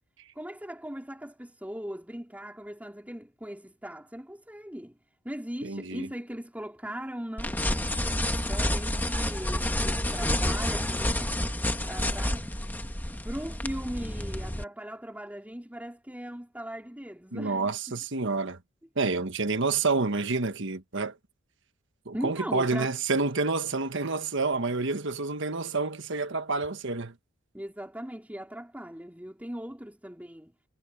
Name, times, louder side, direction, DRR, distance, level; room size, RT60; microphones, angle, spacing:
voice 1, 0.3-5.0 5.2-8.0 8.5-12.6 13.2-17.7 22.1-22.9 27.5-30.5, equal, 10° right, 4.3 m, -39 dB
voice 2, 5.6-6.1 17.3-18.6 18.9-21.2 22.0-27.1, right 3 dB, 60° right, 1.4 m, -28 dB
sound 1, 7.4-14.6, left 1 dB, 10° left, 1.5 m, -29 dB
head